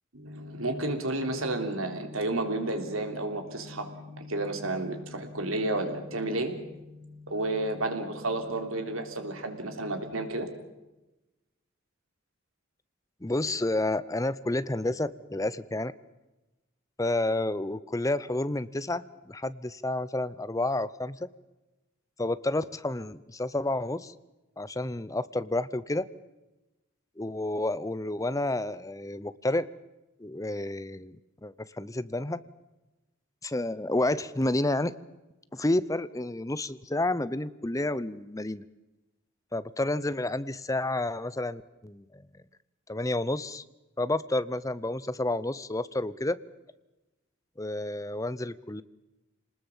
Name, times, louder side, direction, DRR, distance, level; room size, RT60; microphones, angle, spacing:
voice 1, 0.1-10.5, right 2 dB, 90° right, 6 dB, 3.4 m, -32 dB
voice 2, 13.2-15.9 17.0-21.3 22.2-24.1 24.6-26.1 27.2-29.7 30.2-31.2 31.4-32.4 33.4-34.9 35.5-38.6 39.5-42.2 42.9-43.6 44.0-46.4 47.6-48.8, left 2 dB, 15° left, 16 dB, 0.7 m, -30 dB
27.0 x 20.0 x 7.3 m, 1.0 s
head